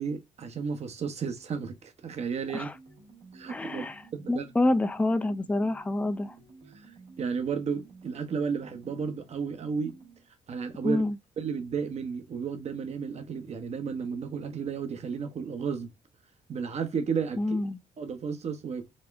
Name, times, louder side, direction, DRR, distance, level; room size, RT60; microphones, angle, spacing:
voice 1, 0.0-2.7 3.3-3.9 4.1-4.5 7.2-9.9 10.5-11.0 11.4-15.9 16.5-17.6 18.0-18.8, right 6 dB, 50° right, 0.8 m, -33 dB
sound 1, 2.6-10.3, right 4 dB, 70° right, 1.1 m, -53 dB
voice 2, 3.5-4.0 4.3-6.4 10.8-11.2 17.4-17.8, left 2 dB, 10° left, 0.4 m, -27 dB
4.2 x 2.1 x 3.3 m
supercardioid pair, 55°, 14 cm